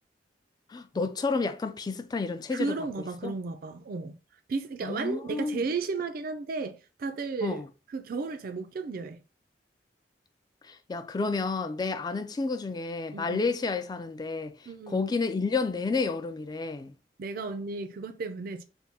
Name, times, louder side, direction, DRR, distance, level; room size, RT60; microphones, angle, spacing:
voice 1, 0.7-2.7 3.2-3.3 4.8-5.6 7.4-7.6 10.7-14.5 14.9-16.9, left 4 dB, 25° left, 0.3 m, -30 dB
voice 2, 2.5-4.2 4.5-9.2 13.1-13.5 14.7-15.0 17.2-18.6, right 4 dB, 55° right, 0.4 m, -34 dB
3.5 x 2.2 x 4.1 m
head